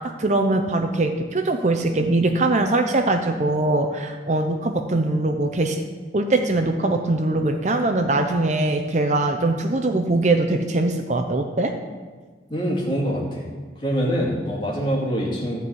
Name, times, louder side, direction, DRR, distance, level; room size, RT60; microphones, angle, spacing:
voice 1, 0.0-5.8 6.1-11.7, right 2 dB, 40° right, 5 dB, 0.7 m, -22 dB
voice 2, 12.5-13.5 13.8-15.6, equal, 25° left, -4 dB, 2.7 m, -24 dB
13.5 x 4.6 x 8.4 m, 1.4 s
head